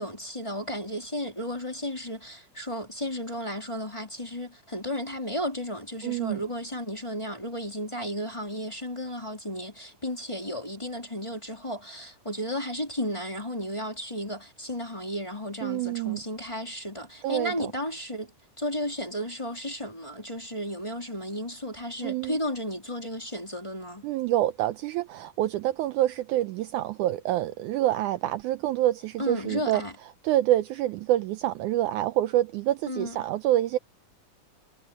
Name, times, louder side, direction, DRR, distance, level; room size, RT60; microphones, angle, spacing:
voice 1, 0.0-24.1 29.2-29.9 32.9-33.2, equal, 10° left, 3.2 m, -34 dB
voice 2, 6.0-6.4 15.6-16.2 17.2-17.7 22.0-22.4 24.0-29.8 30.2-33.8, right 14 dB, 80° right, 1.9 m, -26 dB
omnidirectional pair, 3.9 m